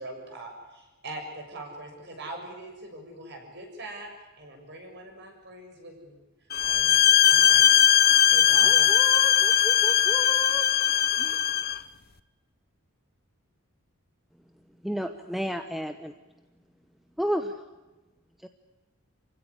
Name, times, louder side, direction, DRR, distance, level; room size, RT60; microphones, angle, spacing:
voice 1, 0.0-4.1 4.4-6.2 6.6-7.7 8.3-8.9, right 2 dB, 50° right, 6.9 m, -42 dB
sound 1, 6.5-11.8, left 10 dB, 45° left, 0.9 m, -20 dB
voice 2, 8.6-10.7 11.2-11.4, left 2 dB, 20° left, 1.7 m, -37 dB
voice 3, 14.8-16.1 17.2-17.6 18.4-18.5, equal, ahead, 0.9 m, -30 dB
28.0 x 16.5 x 9.8 m
head